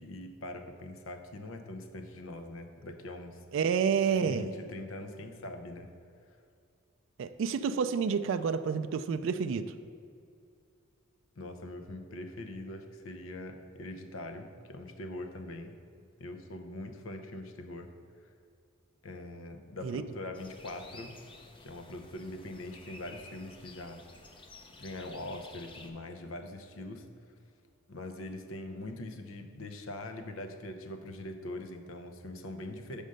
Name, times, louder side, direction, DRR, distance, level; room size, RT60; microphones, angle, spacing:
voice 1, 0.0-3.4 4.1-5.9 11.4-15.8 16.2-17.9 18.2-18.3 19.0-21.2 21.6-24.0 24.8-27.1 27.9-33.0, left 1 dB, 80° left, 6 dB, 0.7 m, -42 dB
voice 2, 3.5-4.5 7.2-9.7 19.8-20.0, right 6 dB, 65° right, 10 dB, 0.3 m, -29 dB
sound 1, 20.3-25.9, left 2 dB, 25° left, 0.5 m, -52 dB
5.4 x 5.0 x 6.4 m, 2.3 s
head